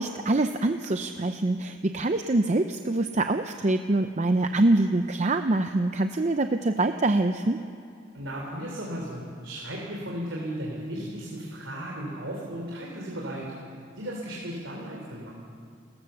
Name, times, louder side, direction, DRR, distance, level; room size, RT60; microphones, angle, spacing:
voice 1, 0.0-7.6, right 2 dB, 35° right, 7 dB, 0.6 m, -25 dB
voice 2, 8.1-13.5 14.0-15.3, equal, 85° right, -2 dB, 3.4 m, -35 dB
29.5 x 15.0 x 7.0 m, 2.5 s
head